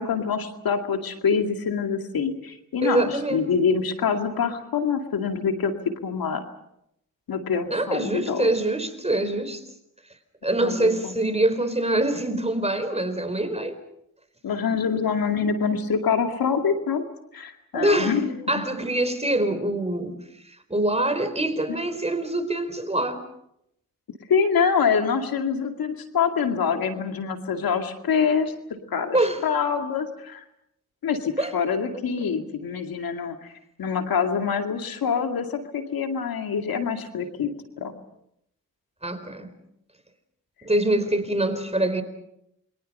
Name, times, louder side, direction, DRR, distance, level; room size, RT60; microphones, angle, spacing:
voice 1, 0.0-5.7 6.0-6.4 7.3-8.5 10.5-11.1 14.4-17.1 17.3-18.6 24.3-28.5 28.9-29.2 29.4-30.4 31.0-33.5 33.8-37.9, left 6 dB, 80° left, 5 dB, 2.3 m, -25 dB
voice 2, 2.8-3.5 7.7-9.6 10.4-13.8 17.7-18.2 18.5-20.1 20.5-23.2 29.1-29.4 31.4-31.5 39.0-39.5 40.6-42.0, right 1 dB, 20° right, 9 dB, 4.3 m, -24 dB
29.0 x 23.5 x 5.5 m, 0.78 s
cardioid pair, 50°, 35 cm